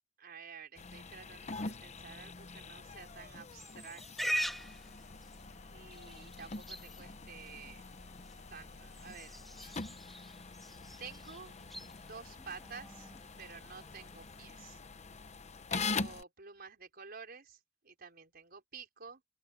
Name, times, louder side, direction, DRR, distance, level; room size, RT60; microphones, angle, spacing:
voice 1, 0.2-4.5 5.7-7.8 8.4-9.9 11.0-11.5 12.1-13.1 13.4-14.8 15.7-17.6 17.8-19.2, right 5 dB, 55° right, 4.9 m, -51 dB
sound 1, 0.8-16.2, left 4 dB, 35° left, 0.9 m, -44 dB
Livestock farm animals working animals, 3.6-14.4, equal, ahead, 2.0 m, -44 dB
open air
head